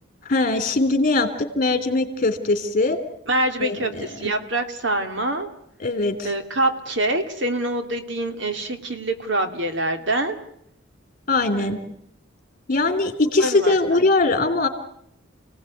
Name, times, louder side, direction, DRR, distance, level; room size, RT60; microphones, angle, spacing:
voice 1, 0.3-1.3 1.5-3.0 3.6-4.3 5.8-6.3 11.3-11.8 12.7-14.7, left 2 dB, 45° left, 8 dB, 3.4 m, -21 dB
voice 2, 3.3-5.5 6.2-10.4 11.5-11.8 13.4-14.0, right 1 dB, 65° right, 7 dB, 2.6 m, -25 dB
29.5 x 18.0 x 9.5 m, 0.74 s
head